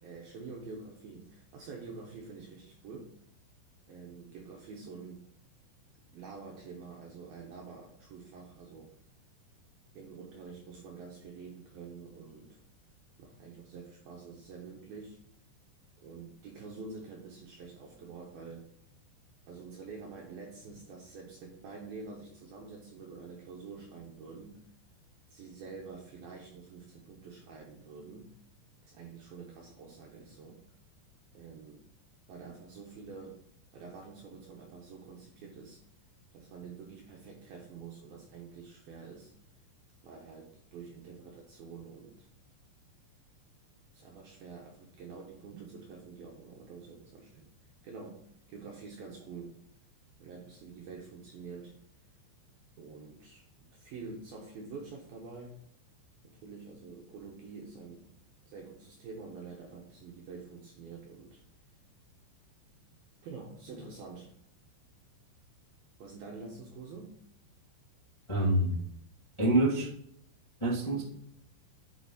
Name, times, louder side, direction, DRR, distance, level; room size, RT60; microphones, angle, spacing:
voice 1, 0.0-3.1 3.9-5.2 6.1-8.9 9.9-12.6 13.2-15.2 16.0-18.7 19.5-24.6 25.3-28.4 28.8-30.6 31.3-31.9 32.3-33.4 33.7-35.8 36.3-39.3 40.0-42.3 43.9-49.6 50.2-51.8 52.8-55.6 56.2-58.1 58.5-61.4 62.9-64.3 66.0-67.2 70.8-71.0, right 4 dB, 70° right, -1 dB, 2.3 m, -47 dB
voice 2, 68.3-68.8 69.4-69.9 70.6-71.0, right 1 dB, 55° left, -7 dB, 0.3 m, -26 dB
9.9 x 5.7 x 4.2 m, 0.69 s
omnidirectional pair, 5.5 m